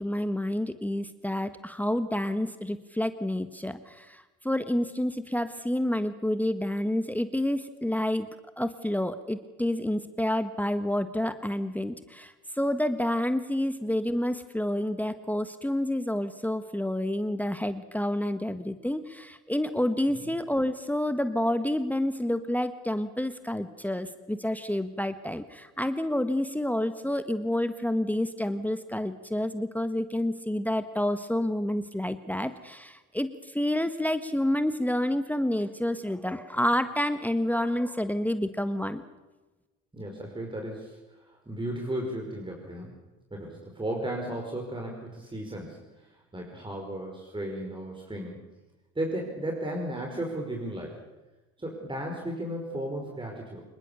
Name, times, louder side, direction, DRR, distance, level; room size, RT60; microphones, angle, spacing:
voice 1, 0.0-8.3 8.6-39.0, left 1 dB, 5° left, 11 dB, 1.5 m, -29 dB
voice 2, 39.9-41.0 41.5-43.0 43.3-45.8 46.3-48.4 49.0-50.9 51.6-53.6, right 1 dB, 15° right, 1 dB, 5.3 m, -34 dB
25.5 x 21.0 x 7.0 m, 1.1 s
hypercardioid pair, 70°, 37 cm